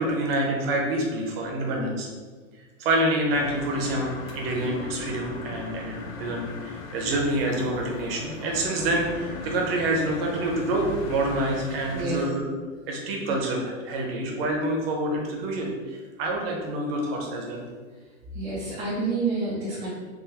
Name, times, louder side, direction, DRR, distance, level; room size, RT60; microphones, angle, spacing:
voice 1, 0.0-2.1 2.8-12.5 12.9-17.6, right 1 dB, 50° right, 1 dB, 0.8 m, -27 dB
sound 1, 3.3-12.0, left 3 dB, 85° left, 0.7 m, -38 dB
voice 2, 18.3-19.9, right 3 dB, 10° right, -10 dB, 0.4 m, -28 dB
3.7 x 2.6 x 2.9 m, 1.4 s
hypercardioid pair, 145°, 39 cm